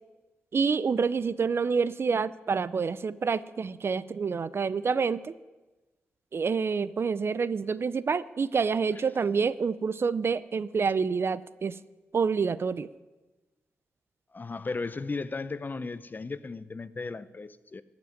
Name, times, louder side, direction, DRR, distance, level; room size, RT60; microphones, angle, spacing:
voice 1, 0.5-5.3 6.3-11.8 12.1-12.9, right 5 dB, 55° right, 0.5 m, -27 dB
voice 2, 14.3-17.8, left 3 dB, 40° left, 0.7 m, -35 dB
14.5 x 6.1 x 9.7 m
cardioid pair, 50°, 5 cm